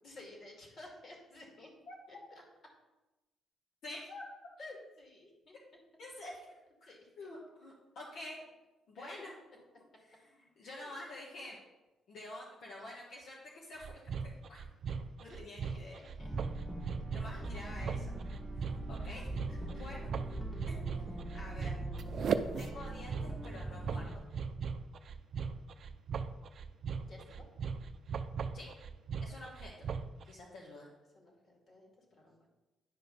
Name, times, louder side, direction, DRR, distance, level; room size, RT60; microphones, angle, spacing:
voice 1, 0.0-1.7 2.1-2.4 4.6-5.6 6.8-7.3 8.9-9.3 10.6-11.0 12.8-12.9 15.2-16.4 17.3-17.6 19.5-20.1 20.5-20.7 27.0-27.5 31.1-32.5, left 2 dB, 50° left, 0 dB, 2.4 m, -54 dB
voice 2, 1.9-2.2 3.8-4.2 6.0-6.5 6.8-6.9 7.2-8.4 8.9-9.4 10.6-11.6 12.1-14.6 15.2-16.0 17.1-18.1 18.6-19.3 19.7-20.1 20.7-21.8 22.6-24.2 28.5-28.7 29.2-29.9 30.2-30.9, left 1 dB, 70° left, -3 dB, 1.3 m, -48 dB
sound 1, 13.8-30.2, right 6 dB, 60° right, 0.5 m, -38 dB
sound 2, 16.2-24.2, right 2 dB, 10° right, 1.0 m, -42 dB
9.8 x 5.1 x 4.1 m, 1.1 s
cardioid pair, 90°, 0 cm